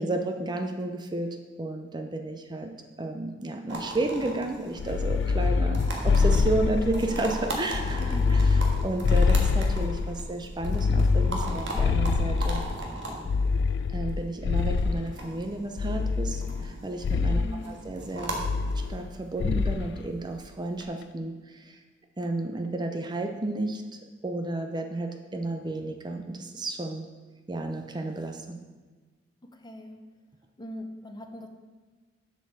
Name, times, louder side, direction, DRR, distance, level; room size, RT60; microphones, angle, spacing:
voice 1, 0.0-2.7 3.0-12.7 13.9-18.4 18.7-21.8 22.2-23.8 24.2-27.1 27.5-28.6, right 2 dB, 25° right, 5 dB, 0.5 m, -32 dB
sound 1, 3.7-20.8, right 1 dB, 65° right, 1.6 m, -38 dB
sound 2, 4.8-7.2 7.7-10.1 10.6-12.8 13.3-15.1 15.8-16.7 17.0-17.5 18.4-19.1 19.4-19.9, left 4 dB, 65° left, 0.3 m, -25 dB
voice 2, 8.0-8.4 17.3-17.8 29.6-30.0 30.6-31.5, left 1 dB, 25° left, 5 dB, 0.8 m, -40 dB
7.7 x 5.4 x 6.6 m, 1.4 s
head